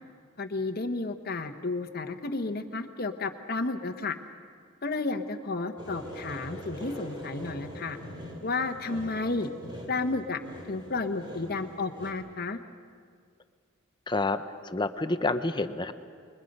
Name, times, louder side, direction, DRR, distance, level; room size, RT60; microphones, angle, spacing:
voice 1, 0.4-4.1 4.8-8.0 8.4-9.5 9.9-10.4 10.7-12.6, left 3 dB, 50° left, 7 dB, 1.2 m, -32 dB
sound 1, 5.8-12.1, equal, 25° right, 3.4 m, -43 dB
voice 2, 14.1-15.9, left 2 dB, 20° left, 10 dB, 0.7 m, -29 dB
29.0 x 22.0 x 5.4 m, 2.1 s
head